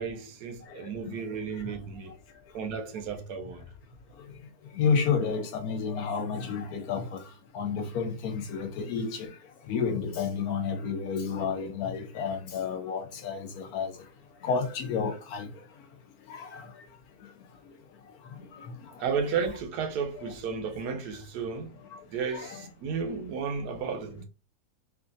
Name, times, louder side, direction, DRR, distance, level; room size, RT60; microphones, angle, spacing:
voice 1, 0.0-2.1 2.5-3.6 19.0-21.7 22.1-24.2, right 6 dB, 85° right, 1.2 m, -33 dB
voice 2, 4.8-7.0 7.5-9.3 9.7-13.9 14.5-15.5 22.3-22.5, left 6 dB, 75° left, 1.0 m, -30 dB
3.2 x 2.5 x 2.5 m
omnidirectional pair, 1.7 m